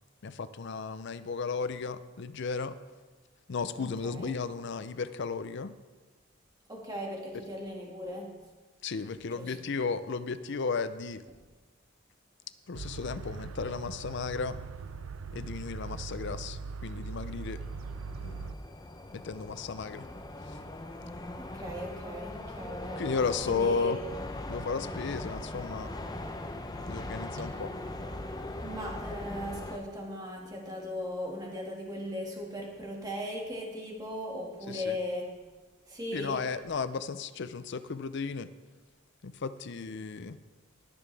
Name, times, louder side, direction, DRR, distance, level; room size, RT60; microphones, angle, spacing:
voice 1, 0.2-2.8 3.5-5.7 8.8-11.2 12.7-14.6 15.3-17.6 18.2-18.5 19.1-20.1 23.0-24.0 24.5-25.9 26.9-27.7 34.7-35.0 36.1-38.5 39.2-40.4, left 4 dB, 60° left, 13 dB, 0.5 m, -34 dB
voice 2, 3.8-4.3 6.7-8.4 9.3-9.6 21.4-23.1 23.4-24.0 27.6-27.7 28.6-35.4 35.9-36.4, left 1 dB, 20° right, -2 dB, 1.9 m, -38 dB
sound 1, 12.7-18.5, right 5 dB, 80° right, 0.5 m, -40 dB
sound 2, 17.4-29.8, left 1 dB, 20° left, 0.7 m, -40 dB
20.5 x 7.0 x 3.4 m, 1.3 s
head